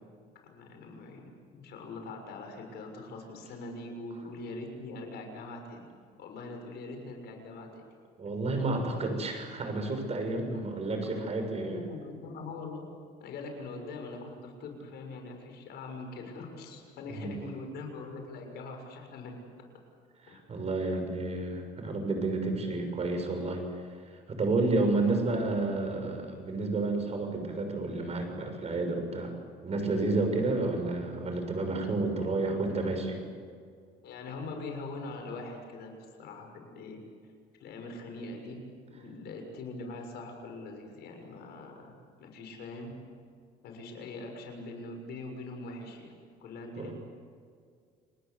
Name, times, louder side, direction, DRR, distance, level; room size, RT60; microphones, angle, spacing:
voice 1, 0.5-5.9 6.2-7.8 11.5-12.8 13.2-19.3 20.3-20.4 32.1-32.6 34.0-35.9 36.2-37.0 37.6-38.6 38.9-41.9 42.2-42.9 43.6-46.1 46.4-47.0, left 3 dB, 75° left, 3 dB, 6.6 m, -42 dB
voice 2, 8.2-11.9 17.1-17.4 20.3-23.6 24.3-29.3 29.6-33.2 46.8-47.0, right 2 dB, 40° right, 5 dB, 6.8 m, -30 dB
29.0 x 20.5 x 8.1 m, 2.1 s
cardioid pair, 110°, 17 cm